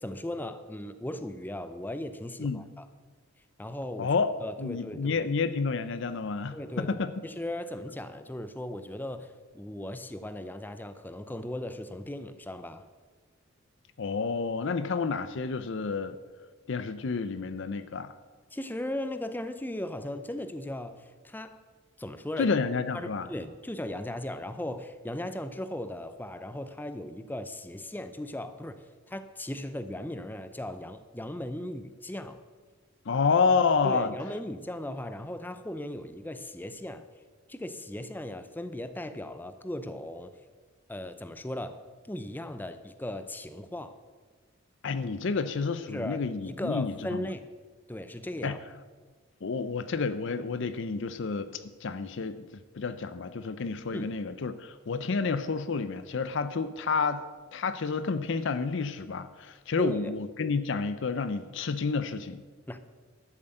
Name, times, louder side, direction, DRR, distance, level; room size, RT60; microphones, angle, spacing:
voice 1, 0.0-2.9 3.6-4.1 4.4-5.3 6.5-12.9 18.5-21.6 22.0-22.5 22.9-32.4 33.8-37.1 37.5-40.3 40.9-44.0 45.9-47.5 47.9-48.6 53.9-54.1 59.8-60.1 62.7-62.8, left 1 dB, 10° left, 11 dB, 0.5 m, -37 dB
voice 2, 4.0-4.3 4.6-7.1 14.0-16.2 16.7-18.1 22.4-23.3 33.1-34.1 44.8-47.3 48.4-48.5 49.4-52.5 52.7-57.2 57.5-62.4, left 4 dB, 65° left, 13 dB, 0.5 m, -29 dB
12.0 x 7.4 x 7.8 m, 1.4 s
head